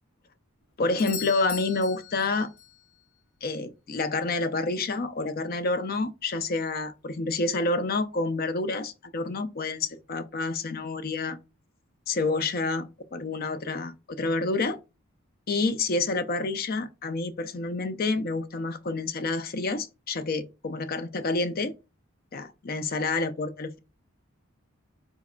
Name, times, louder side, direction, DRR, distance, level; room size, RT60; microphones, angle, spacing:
voice 1, 0.8-2.5 3.4-11.4 12.1-14.8 15.5-21.7 22.3-23.8, left 3 dB, 45° left, 0.5 m, -28 dB
Doorbell, 1.0-2.8 6.9-7.0, left 9 dB, 75° left, 1.0 m, -39 dB
4.8 x 4.0 x 2.2 m
head